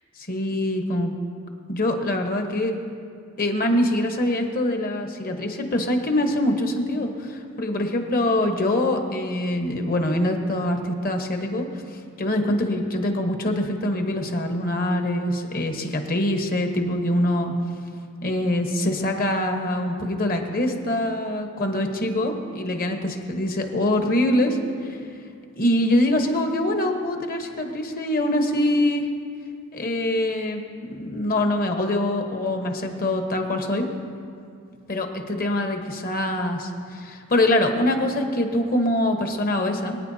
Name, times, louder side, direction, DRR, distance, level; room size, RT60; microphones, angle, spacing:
voice 1, 0.2-1.1 1.7-2.8 3.4-11.8 12.2-17.5 18.2-25.0 25.6-29.1 29.7-30.6 30.9-33.9 34.9-40.0, left 1 dB, 45° left, 4 dB, 1.2 m, -24 dB
24.0 x 9.5 x 2.8 m, 2.4 s
head